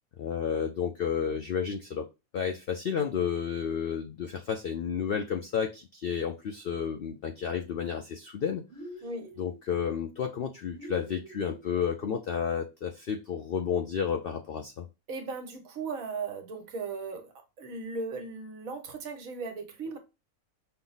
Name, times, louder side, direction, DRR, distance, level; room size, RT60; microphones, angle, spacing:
voice 1, 0.2-2.1 2.3-8.6 9.4-14.8, left 7 dB, 70° left, 0.5 m, -31 dB
sound 1, 8.7-9.6 10.7-11.6, equal, 55° right, 1.2 m, -45 dB
voice 2, 9.0-9.3 15.1-20.0, right 4 dB, 75° right, 1.3 m, -37 dB
5.6 x 2.0 x 3.9 m
omnidirectional pair, 1.5 m